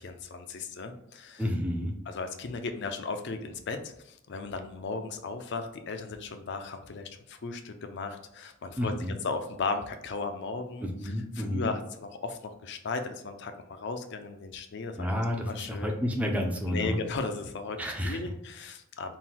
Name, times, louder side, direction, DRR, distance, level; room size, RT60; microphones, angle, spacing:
voice 1, 0.0-1.4 2.1-8.9 9.2-16.0 16.7-19.2, left 4 dB, 60° left, 7 dB, 0.5 m, -36 dB
voice 2, 1.4-1.9 8.8-9.1 10.8-11.7 15.0-17.0 17.8-18.2, equal, 5° right, 1 dB, 0.5 m, -30 dB
3.7 x 2.2 x 4.3 m, 0.74 s
head